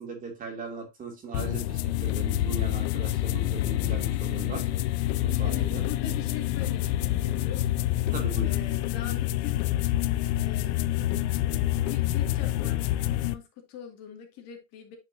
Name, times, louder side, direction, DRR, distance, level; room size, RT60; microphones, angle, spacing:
voice 1, 0.0-4.7 5.2-5.8 8.1-8.6, right 4 dB, 20° right, 3 dB, 2.4 m, -38 dB
sound 1, 1.3-13.3, left 14 dB, 65° left, 0.7 m, -27 dB
voice 2, 5.4-7.9 8.4-9.6 10.4-11.1 11.5-15.0, left 8 dB, 45° left, 3 dB, 2.3 m, -43 dB
9.5 x 5.8 x 2.7 m, 0.22 s
supercardioid pair, 145°, 36 cm